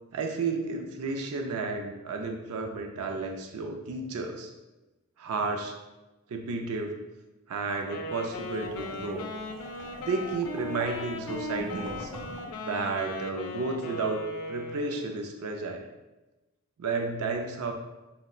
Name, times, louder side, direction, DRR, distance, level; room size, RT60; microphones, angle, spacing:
voice 1, 0.1-4.5 5.2-5.7 6.3-7.0 7.5-9.3 10.0-12.1 12.6-15.9 16.8-17.7, right 3 dB, 85° right, 4 dB, 0.4 m, -32 dB
Wind instrument woodwind instrument, 7.8-15.1, left 1 dB, 80° left, 0.4 m, -38 dB
sound 1, 8.4-12.7, right 1 dB, 20° right, 0.8 m, -44 dB
5.3 x 2.0 x 2.3 m, 1.1 s
head